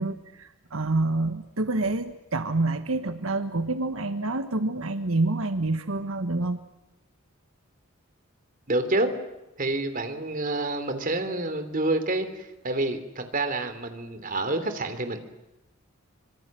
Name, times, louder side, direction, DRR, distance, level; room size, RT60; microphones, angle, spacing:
voice 1, 0.0-6.6, right 2 dB, 85° right, 9 dB, 1.4 m, -27 dB
voice 2, 8.7-9.1 9.6-15.2, right 2 dB, 40° right, 9 dB, 3.4 m, -28 dB
26.0 x 25.5 x 7.6 m, 0.94 s
head